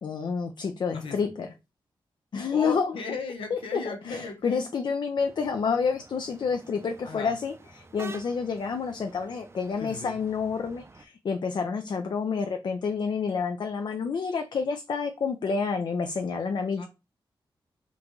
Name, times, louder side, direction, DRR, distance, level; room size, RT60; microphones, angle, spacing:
voice 1, 0.0-1.5 2.3-2.9 3.5-16.9, left 5 dB, 60° left, 0.4 m, -29 dB
voice 2, 2.5-4.7 7.0-7.3 9.8-10.2 16.8-16.9, left 4 dB, 85° left, 0.8 m, -36 dB
sound 1, 5.2-11.1, right 3 dB, 30° right, 0.5 m, -49 dB
3.8 x 2.3 x 3.0 m
cardioid pair, 75°, 9 cm